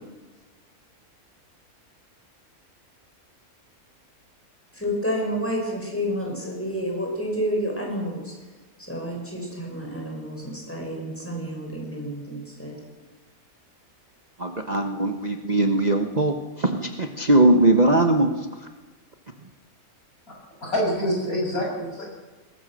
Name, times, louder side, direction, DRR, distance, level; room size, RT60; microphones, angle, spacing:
voice 1, 4.7-8.3 8.8-12.8, equal, 10° left, -1 dB, 6.2 m, -29 dB
voice 2, 14.4-18.3 18.6-18.7, right 2 dB, 30° right, 4 dB, 1.2 m, -20 dB
voice 3, 20.6-22.0, equal, 70° left, -1 dB, 7.4 m, -26 dB
21.5 x 21.0 x 6.4 m, 1.2 s
omnidirectional pair, 1.6 m